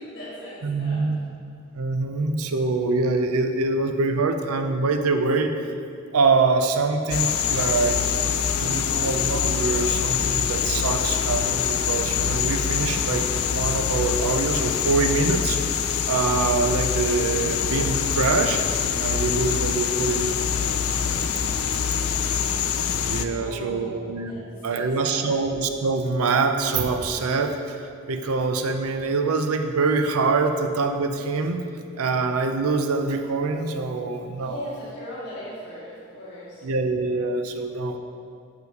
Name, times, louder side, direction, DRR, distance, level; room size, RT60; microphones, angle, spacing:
voice 1, 0.0-1.1 23.0-25.3 34.3-36.7, equal, 50° left, -12 dB, 1.8 m, -39 dB
voice 2, 0.6-1.4 1.7-5.5 6.1-8.0 8.6-18.6 19.0-20.3 23.0-31.6 32.0-34.7 36.6-38.0, right 3 dB, 90° right, 6 dB, 0.5 m, -24 dB
sound 1, 7.1-23.2, left 7 dB, 80° left, 0.4 m, -24 dB
6.7 x 5.0 x 4.7 m, 2.3 s
head